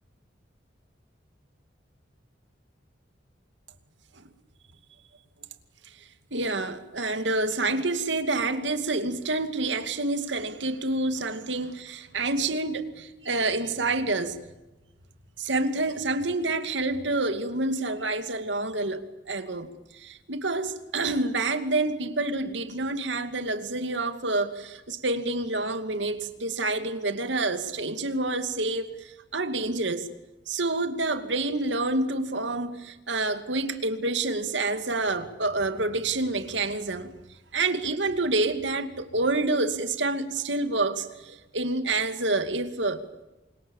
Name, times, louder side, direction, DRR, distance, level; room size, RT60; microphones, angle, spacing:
voice 1, 6.3-14.4 15.4-19.7 19.9-30.1 30.5-37.1 37.5-43.0, right 2 dB, 75° right, 2.5 m, -28 dB
29.5 x 25.5 x 7.3 m
head